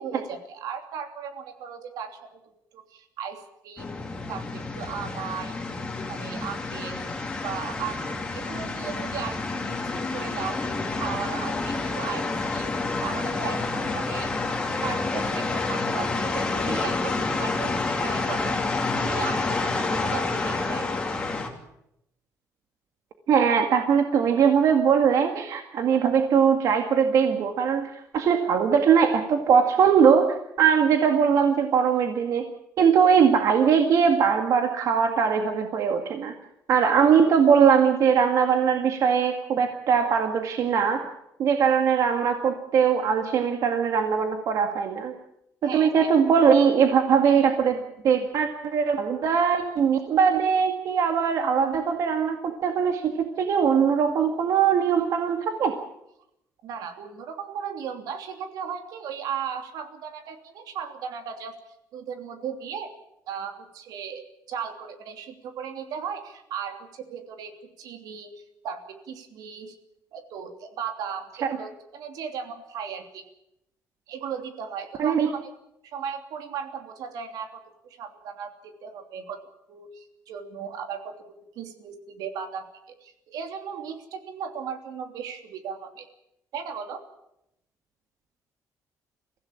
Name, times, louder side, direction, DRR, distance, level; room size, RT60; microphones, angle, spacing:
voice 1, 0.0-2.4 2.7-3.9 4.3-5.8 6.1-7.1 7.4-10.6 10.9-14.3 14.8-18.5 18.9-20.9 45.6-46.1 56.6-61.5 61.9-62.9 63.3-68.3 68.6-69.7 70.1-73.2 74.1-75.5 75.8-79.4 79.7-81.1 81.5-86.1 86.5-87.0, right 7 dB, 80° right, 6 dB, 3.0 m, -36 dB
sound 1, 3.8-21.5, left 3 dB, 15° left, 2.8 m, -29 dB
voice 2, 23.3-32.5 32.8-36.3 36.7-41.1 41.4-45.1 45.7-55.7 75.0-75.3, right 7 dB, 55° right, 5 dB, 1.9 m, -21 dB
23.5 x 16.0 x 8.8 m, 0.82 s
cardioid pair, 170°, 7 cm